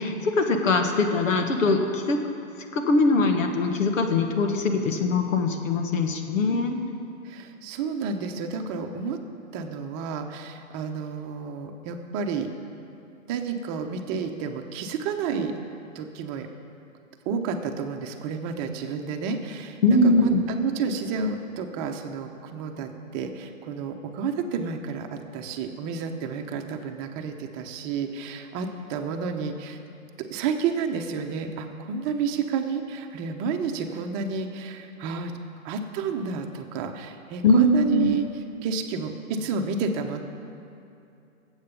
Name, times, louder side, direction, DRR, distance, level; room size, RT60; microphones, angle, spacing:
voice 1, 0.0-2.2 2.7-6.8 19.8-20.4 37.4-38.1, left 2 dB, 65° left, 4 dB, 1.8 m, -22 dB
voice 2, 7.2-9.2 9.5-12.5 13.3-15.5 15.9-16.5 17.2-29.8 30.2-35.3 35.6-40.2, right 5 dB, 30° right, 5 dB, 1.0 m, -30 dB
19.5 x 8.2 x 5.4 m, 2.7 s
hypercardioid pair, 130°, 41 cm